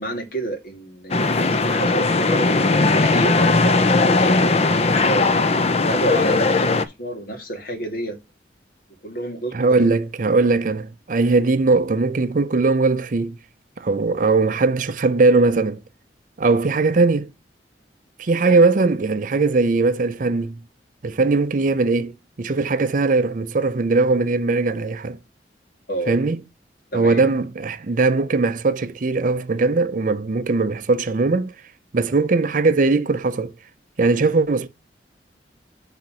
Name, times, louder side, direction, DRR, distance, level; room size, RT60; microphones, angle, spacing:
voice 1, 0.0-5.3 5.8-8.2 9.0-9.8 18.4-18.6 25.9-26.2 26.9-27.4, right 1 dB, 55° left, 1.8 m, -29 dB
sound 1, 1.1-6.9, left 3 dB, 35° left, 0.5 m, -18 dB
voice 2, 9.5-13.4 13.8-15.8 16.4-17.3 18.2-20.6 21.0-25.2 26.1-26.4 26.9-31.5 31.9-33.5 34.0-34.7, right 3 dB, 45° right, 0.5 m, -19 dB
5.8 x 3.8 x 5.8 m
head